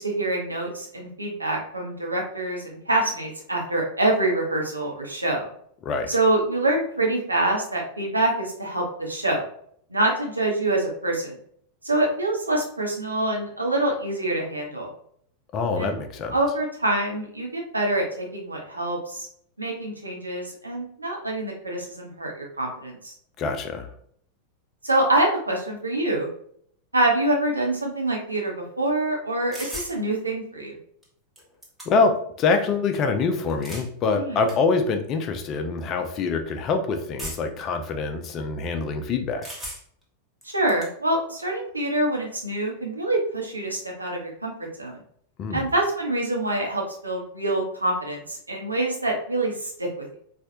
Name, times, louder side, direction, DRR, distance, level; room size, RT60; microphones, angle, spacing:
voice 1, 0.0-5.5 6.1-9.4 9.9-11.3 11.8-14.9 15.8-15.9 16.3-19.3 19.6-23.1 24.8-26.3 26.9-30.8 34.1-34.4 40.5-45.0 45.5-50.2, right 2 dB, 80° right, 0 dB, 0.8 m, -25 dB
voice 2, 15.5-16.3 23.4-23.9 31.9-39.5 45.4-45.7, left 4 dB, 35° left, 6 dB, 0.5 m, -25 dB
sound 1, 29.5-29.9 31.0-31.1 31.4-32.2 33.4-33.9 34.5-34.6 35.4-35.6 37.2-37.6 39.4-40.0 40.4-40.9, equal, 5° right, 1.0 m, -37 dB
4.2 x 2.4 x 2.7 m, 0.65 s
figure-of-eight pair, 90°, 0 cm